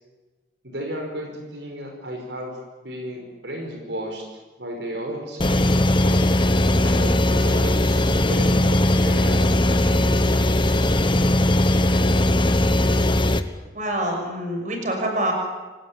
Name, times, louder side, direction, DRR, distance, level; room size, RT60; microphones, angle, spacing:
voice 1, 0.6-2.5 2.8-4.3 4.6-5.7 6.0-6.2 6.8-10.1, right 1 dB, 80° right, 2 dB, 5.3 m, -33 dB
sound 1, 5.4-13.4, left 1 dB, 30° left, 1.2 m, -19 dB
voice 2, 13.7-15.3, right 1 dB, 45° right, 3 dB, 6.2 m, -26 dB
27.0 x 18.5 x 8.9 m, 1.2 s
head